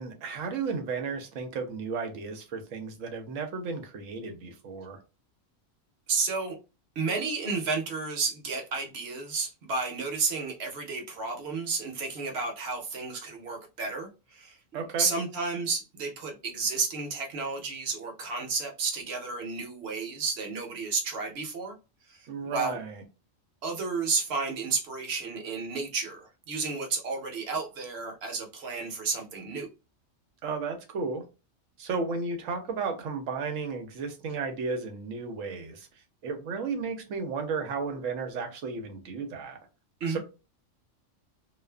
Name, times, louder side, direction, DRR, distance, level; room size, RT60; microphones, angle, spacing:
voice 1, 0.0-5.0 14.7-15.1 22.3-23.0 30.4-31.2 31.8-35.9 36.2-39.6 40.1-40.2, right 4 dB, 85° right, 1.0 m, -33 dB
voice 2, 6.1-6.6 7.0-14.6 15.0-21.7 22.1-22.8 23.6-29.7 40.0-40.2, right 4 dB, 60° right, 0.9 m, -32 dB
2.5 x 2.4 x 2.2 m
omnidirectional pair, 1.3 m